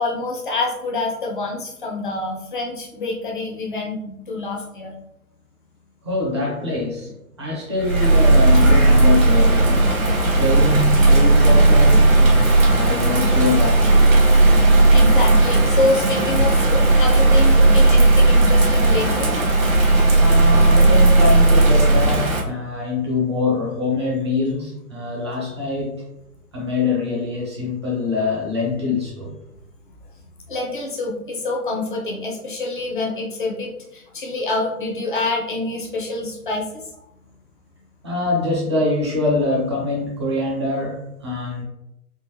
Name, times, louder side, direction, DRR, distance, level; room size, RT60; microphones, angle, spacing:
voice 1, 0.0-4.9 14.7-19.3 30.5-36.8, left 2 dB, 35° left, -1 dB, 0.6 m, -26 dB
voice 2, 6.0-7.1 7.4-9.9 10.4-14.1 20.2-26.0 26.5-29.4 38.0-41.6, left 3 dB, 20° right, -3 dB, 0.6 m, -24 dB
Bird vocalization bird call bird song / Rain, 7.8-22.4, right 2 dB, 60° right, 1.1 m, -14 dB
3.7 x 2.4 x 3.1 m, 0.83 s
figure-of-eight pair, 135°, 46 cm